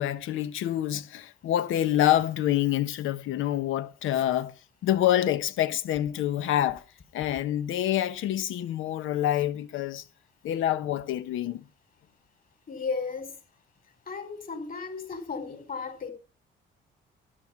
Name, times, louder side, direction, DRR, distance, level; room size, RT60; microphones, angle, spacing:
voice 1, 0.0-4.5 4.8-6.8 7.1-10.0 10.4-11.7, left 12 dB, 85° left, 1.1 m, -27 dB
voice 2, 12.7-13.3 14.1-16.1, left 5 dB, 45° left, 4.8 m, -34 dB
12.5 x 10.0 x 5.8 m
cardioid pair, 90°, 20 cm